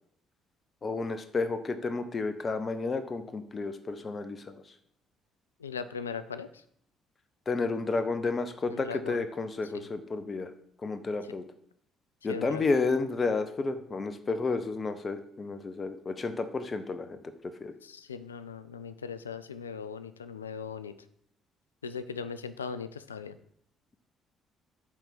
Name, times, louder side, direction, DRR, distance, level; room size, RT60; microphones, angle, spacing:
voice 1, 0.8-4.6 7.5-10.5 10.8-11.4 12.2-17.2 17.6-17.7, left 3 dB, 35° left, 10 dB, 0.7 m, -31 dB
voice 2, 5.6-6.6 8.7-9.2 9.7-9.9 12.3-12.8 17.8-20.9 21.8-23.4, left 6 dB, 85° left, 14 dB, 0.3 m, -39 dB
8.9 x 3.5 x 5.9 m, 0.68 s
figure-of-eight pair, 50°, 0 cm